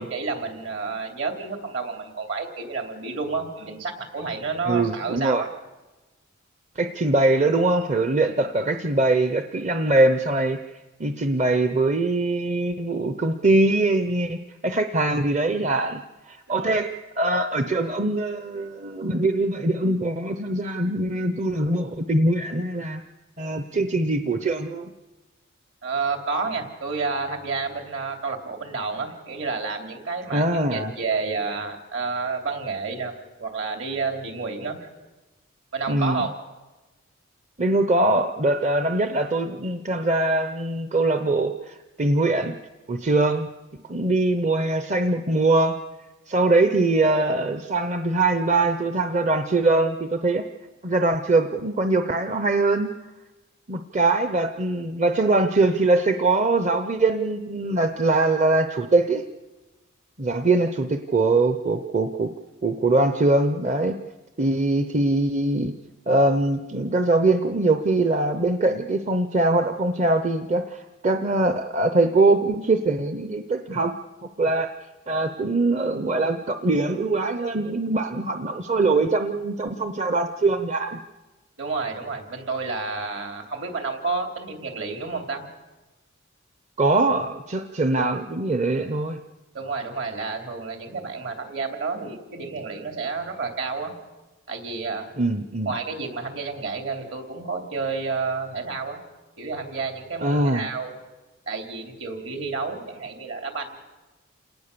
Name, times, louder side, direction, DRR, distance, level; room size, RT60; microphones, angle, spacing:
voice 1, 0.0-5.5 16.5-16.9 25.8-33.1 33.4-34.9 35.7-36.3 81.6-85.5 89.5-93.9 94.5-95.2 95.6-99.0 99.4-101.0 101.5-103.8, right 4 dB, 60° right, 4 dB, 3.3 m, -30 dB
voice 2, 4.7-5.4 6.8-10.6 11.0-14.4 14.6-16.0 16.3-16.9 17.2-23.0 23.4-24.9 30.3-30.9 35.9-36.3 37.6-42.6 42.9-43.5 43.9-45.8 46.3-50.5 50.8-52.9 53.7-59.3 60.2-62.3 62.6-64.0 64.4-65.7 66.1-73.9 74.4-74.7 75.1-81.0 86.8-89.2 95.2-95.7 100.2-100.7, right 2 dB, 35° right, 8 dB, 0.7 m, -22 dB
28.5 x 18.5 x 6.9 m, 1.2 s
head